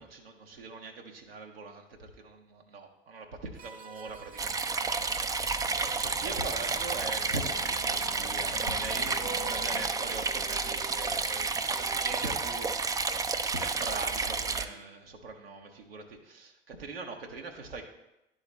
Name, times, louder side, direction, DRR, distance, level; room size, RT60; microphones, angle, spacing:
voice 1, 0.0-17.8, right 3 dB, 80° right, 2 dB, 0.8 m, -42 dB
sound 1, 3.6-14.8, right 4 dB, 30° right, 0.7 m, -46 dB
sound 2, 4.4-14.7, right 4 dB, 15° right, 0.3 m, -31 dB
sound 3, 4.9-9.9, left 9 dB, 65° left, 0.6 m, -48 dB
11.0 x 4.0 x 3.0 m, 0.90 s
figure-of-eight pair, 60°, 29 cm